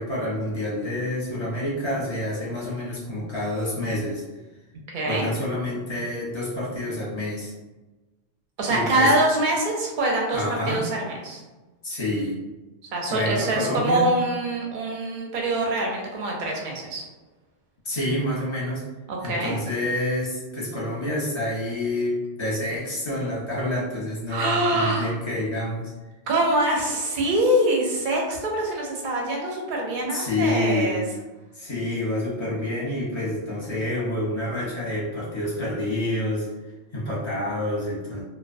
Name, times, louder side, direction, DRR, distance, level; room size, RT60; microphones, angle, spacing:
voice 1, 0.0-4.2 5.1-7.5 8.7-9.1 10.3-10.8 11.8-12.4 13.1-14.1 17.8-18.8 19.2-25.9 30.1-31.0 31.5-36.5 36.9-38.2, left 1 dB, 30° left, -6 dB, 0.6 m, -28 dB
voice 2, 4.9-5.3 8.6-11.4 12.9-17.0 19.1-19.5 24.3-25.1 26.3-31.0, right 1 dB, 55° right, -1 dB, 0.6 m, -24 dB
2.2 x 2.2 x 2.5 m, 1.1 s
omnidirectional pair, 1.2 m